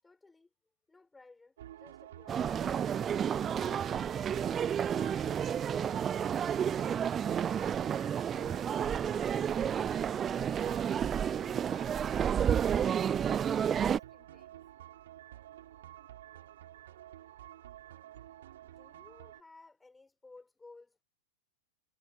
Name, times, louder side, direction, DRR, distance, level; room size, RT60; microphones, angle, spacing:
voice 1, 0.0-0.5 0.9-2.6 18.6-21.0, left 3 dB, 10° left, 5.9 m, -58 dB
sound 1, 1.6-19.4, right 12 dB, 60° right, 4.8 m, -51 dB
sound 2, 2.3-14.0, right 8 dB, 25° right, 0.3 m, -31 dB
voice 2, 8.4-9.1 9.5-14.6, left 9 dB, 25° left, 6.3 m, -63 dB
figure-of-eight pair, 90°, 0 cm